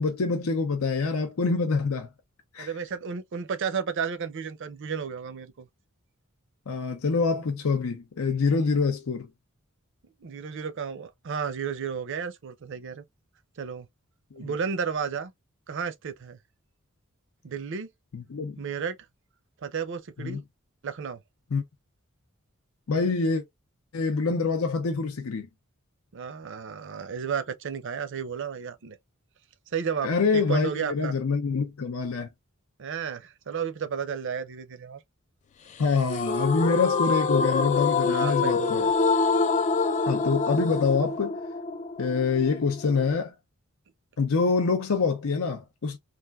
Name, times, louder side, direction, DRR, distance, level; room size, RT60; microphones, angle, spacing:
voice 1, 0.0-2.1 2.5-2.7 6.7-9.3 14.3-14.5 18.1-18.6 20.2-20.4 21.5-21.6 22.9-23.4 23.9-25.5 30.0-32.3 35.8-38.8 40.1-41.4 42.0-43.3 44.2-46.0, left 4 dB, 80° left, 0.6 m, -25 dB
voice 2, 2.6-5.7 10.2-13.0 13.6-13.9 14.4-15.3 15.7-16.4 17.4-17.9 18.6-19.0 19.6-20.4 20.8-21.2 26.1-29.0 29.7-31.1 32.8-35.0 38.1-38.9, right 6 dB, 60° right, 0.5 m, -32 dB
sound 1, 36.1-43.1, left 4 dB, 35° left, 0.3 m, -26 dB
3.3 x 2.5 x 2.3 m
head